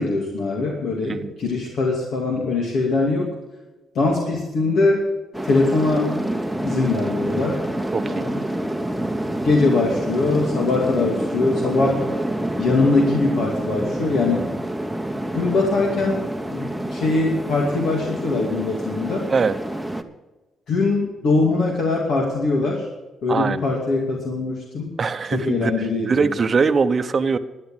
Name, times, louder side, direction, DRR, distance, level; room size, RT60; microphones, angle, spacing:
voice 1, 0.0-3.3 3.9-5.1 5.4-6.1 6.6-7.6 8.0-8.4 9.4-12.0 12.6-14.5 15.3-16.2 16.5-19.3 20.7-22.9 23.2-24.9 25.3-26.3, left 3 dB, 70° left, -1 dB, 2.5 m, -22 dB
sound 1, 5.3-20.0, right 1 dB, ahead, 1.0 m, -27 dB
voice 2, 7.9-8.3 19.3-19.6 23.3-23.6 25.0-27.4, right 5 dB, 40° right, 10 dB, 0.8 m, -22 dB
12.0 x 9.8 x 7.3 m, 1.1 s
cardioid pair, 90°, 0 cm